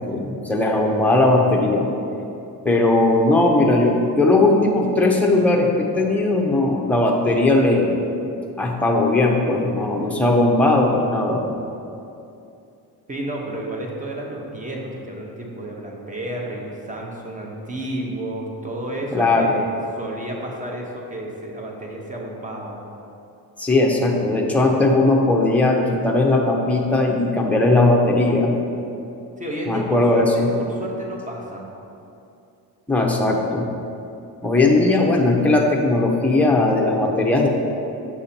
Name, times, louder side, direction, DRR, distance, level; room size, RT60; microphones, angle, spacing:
voice 1, 0.1-1.9 2.6-8.0 8.6-11.4 19.1-19.5 23.6-28.5 29.7-30.5 32.9-33.7 34.4-37.5, left 2 dB, 5° left, -1 dB, 0.7 m, -18 dB
voice 2, 13.1-22.8 29.4-31.7, right 1 dB, 20° right, -1 dB, 1.0 m, -31 dB
6.9 x 6.7 x 2.9 m, 2.7 s
cardioid pair, 115°, 41 cm